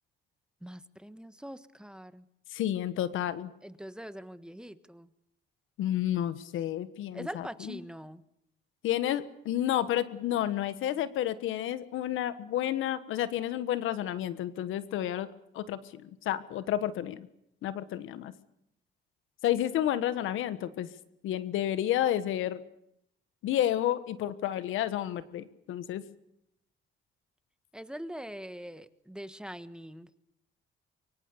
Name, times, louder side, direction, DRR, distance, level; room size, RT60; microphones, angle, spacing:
voice 1, 0.6-2.2 3.6-5.1 7.1-8.2 27.7-30.1, equal, 5° right, 12 dB, 1.4 m, -43 dB
voice 2, 2.5-3.5 5.8-7.8 8.8-15.3 15.5-17.3 17.6-18.3 19.4-20.9 21.2-22.6 23.4-26.0, left 12 dB, 85° left, 14 dB, 1.4 m, -31 dB
24.0 x 24.0 x 6.9 m, 0.80 s
cardioid pair, 90°, 20 cm